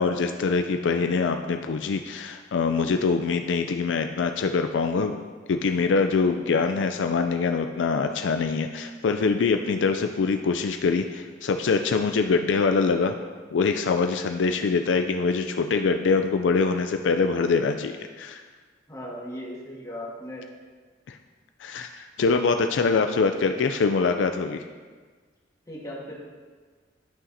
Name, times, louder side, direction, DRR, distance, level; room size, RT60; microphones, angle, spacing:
voice 1, 0.0-5.2 5.5-13.2 13.5-18.4 21.1-21.2 21.6-24.6, left 4 dB, 75° left, 6 dB, 0.4 m, -24 dB
voice 2, 18.9-20.4 25.7-26.1, equal, 20° left, -5 dB, 1.8 m, -37 dB
12.5 x 5.7 x 2.7 m, 1.5 s
head